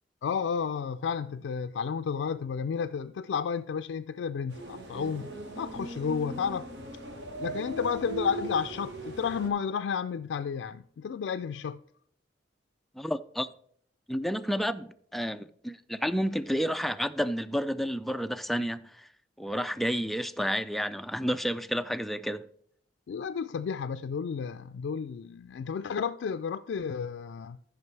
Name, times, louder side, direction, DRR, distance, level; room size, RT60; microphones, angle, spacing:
voice 1, 0.2-7.0 7.4-11.8 23.1-27.6, left 6 dB, 85° left, 0.3 m, -32 dB
sound 1, 4.5-9.5, right 2 dB, 85° right, 1.5 m, -39 dB
voice 2, 13.0-13.5 14.1-19.1 19.4-22.5, equal, ahead, 0.3 m, -30 dB
14.0 x 5.9 x 3.2 m
head